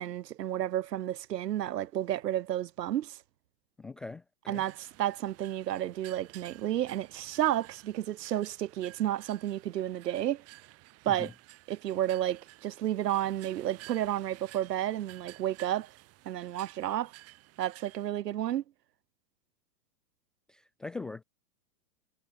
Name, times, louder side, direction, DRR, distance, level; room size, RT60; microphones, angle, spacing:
voice 1, 0.0-3.2 4.5-10.4 11.0-11.3 11.7-15.9 16.2-17.1 17.6-18.6, right 12 dB, 85° right, 1.6 m, -31 dB
voice 2, 3.8-4.6 11.1-11.3 20.5-21.2, left 3 dB, ahead, 0.3 m, -42 dB
sound 1, 4.5-18.1, right 19 dB, 30° right, 5.2 m, -54 dB
supercardioid pair, 155°, 48 cm